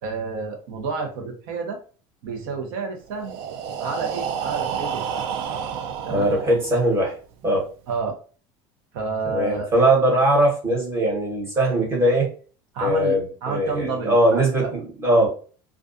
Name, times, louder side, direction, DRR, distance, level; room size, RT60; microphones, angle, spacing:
voice 1, 0.0-1.8 2.2-3.4 3.8-5.2 6.0-6.3 7.9-8.2 8.9-9.7 12.7-13.2 13.4-14.7, right 4 dB, 85° right, 4 dB, 0.8 m, -30 dB
Breathing, 3.1-7.0, right 7 dB, 60° right, 0.4 m, -30 dB
voice 2, 6.1-7.2 7.4-7.7 9.2-12.3 12.8-15.3, right 1 dB, 25° right, -2 dB, 1.1 m, -20 dB
2.4 x 2.3 x 2.5 m, 0.40 s
cardioid pair, 150°, 11 cm